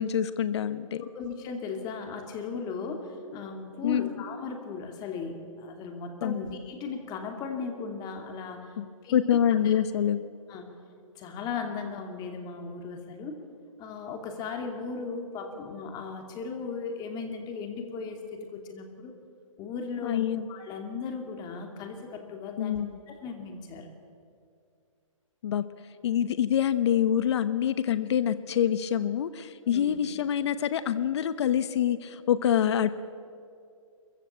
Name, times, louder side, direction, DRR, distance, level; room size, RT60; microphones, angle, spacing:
voice 1, 0.0-1.0 3.8-4.1 6.2-6.4 8.8-8.9 9.1-10.2 20.0-20.5 22.6-23.0 25.4-25.6 26.0-32.9, left 9 dB, 55° left, 13 dB, 1.0 m, -26 dB
voice 2, 1.1-8.7 9.0-9.3 9.6-9.7 10.5-10.7 11.2-13.4 13.8-19.1 19.6-22.8 23.1-23.9 29.7-30.0, left 4 dB, 25° left, 4 dB, 2.7 m, -37 dB
22.5 x 15.0 x 8.6 m, 2.4 s
hypercardioid pair, 140°, 17 cm